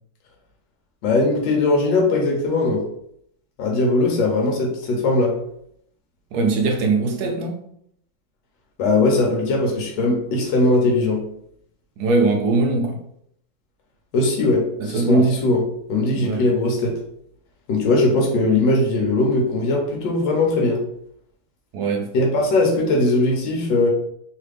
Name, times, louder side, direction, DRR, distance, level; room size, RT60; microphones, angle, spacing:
voice 1, 1.0-2.8 3.6-5.4 8.8-11.2 14.1-15.6 15.9-17.0 17.7-20.8 22.1-23.9, left 2 dB, 80° left, 1.4 m, -19 dB
voice 2, 6.3-7.6 12.0-13.0 14.8-15.3 16.1-16.5 21.7-22.1, right 3 dB, 70° right, 1.0 m, -21 dB
3.2 x 2.4 x 3.3 m
omnidirectional pair, 2.0 m